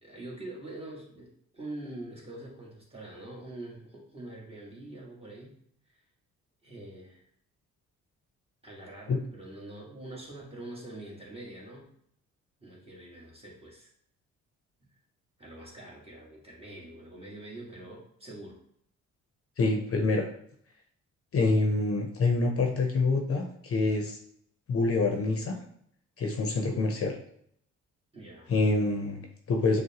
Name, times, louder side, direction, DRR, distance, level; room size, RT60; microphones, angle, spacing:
voice 1, 0.0-5.6 5.9-6.0 6.6-7.2 8.6-11.9 12.6-13.9 15.4-18.6 28.1-28.5, right 1 dB, 20° right, -4 dB, 1.6 m, -44 dB
voice 2, 19.6-20.3 21.3-24.2 24.7-25.6 26.2-27.2 28.5-29.8, left 3 dB, 50° left, 3 dB, 0.7 m, -26 dB
6.2 x 2.2 x 2.9 m, 0.67 s
cardioid pair, 90°, 30 cm